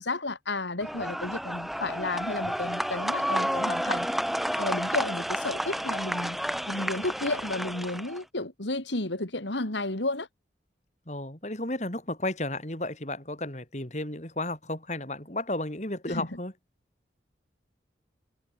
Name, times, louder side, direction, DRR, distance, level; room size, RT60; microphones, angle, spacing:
voice 1, 0.0-4.1 4.6-6.4 6.7-10.3 16.1-16.4, left 2 dB, 80° left, 3.2 m, -32 dB
sound 1, 0.8-8.2, equal, ahead, 1.1 m, -31 dB
voice 2, 11.1-16.5, left 1 dB, 40° left, 3.9 m, -33 dB
head